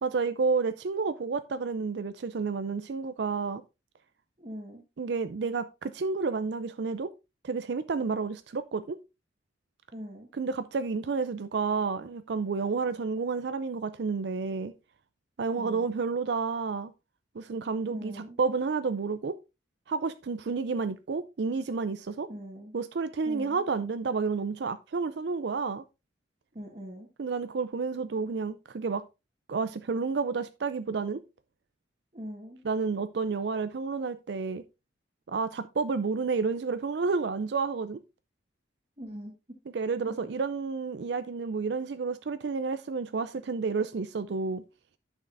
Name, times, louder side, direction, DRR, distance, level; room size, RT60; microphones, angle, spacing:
voice 1, 0.0-3.6 5.0-7.1 7.4-9.0 10.4-14.7 15.4-16.9 17.4-19.4 19.9-22.3 22.7-25.8 27.2-29.0 29.5-31.2 32.6-34.6 35.3-38.0 39.7-44.6, right 4 dB, 65° right, 0.4 m, -30 dB
voice 2, 4.4-4.8 9.9-10.3 15.5-16.0 17.9-18.4 22.3-22.7 23.2-23.6 26.5-27.1 32.1-32.6 39.0-39.6, equal, 35° right, 1.4 m, -42 dB
10.5 x 6.4 x 2.5 m
head